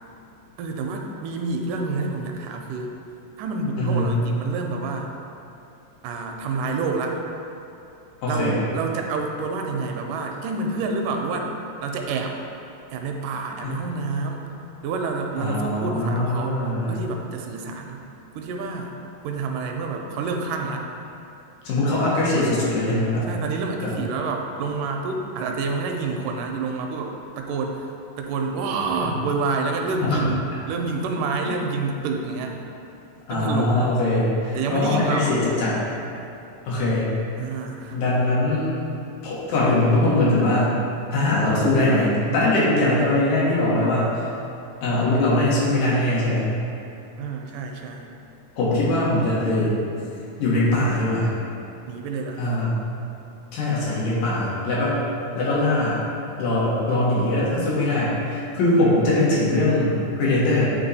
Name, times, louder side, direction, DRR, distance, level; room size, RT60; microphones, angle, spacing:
voice 1, 0.6-2.9 3.4-5.1 6.0-7.2 8.3-11.5 11.8-12.4 12.9-14.5 14.8-16.6 16.9-18.0 18.3-18.9 19.2-20.8 23.3-27.9 28.2-32.7 33.3-33.7 34.5-35.3 37.4-38.0 47.2-48.1 51.9-52.5, right 4 dB, 80° right, 2 dB, 2.0 m, -28 dB
voice 2, 3.8-4.2 8.2-8.6 13.6-13.7 15.4-16.9 20.5-20.6 21.6-23.2 23.8-23.9 30.1-30.2 33.3-35.8 36.7-37.1 37.9-38.7 39.2-40.8 41.1-44.2 44.8-46.5 48.6-49.7 50.4-51.3 52.4-52.7 53.5-55.0 55.3-56.0 56.4-60.7, left 1 dB, 85° left, -7 dB, 3.0 m, -21 dB
8.8 x 2.9 x 4.1 m, 2.8 s
omnidirectional pair, 3.7 m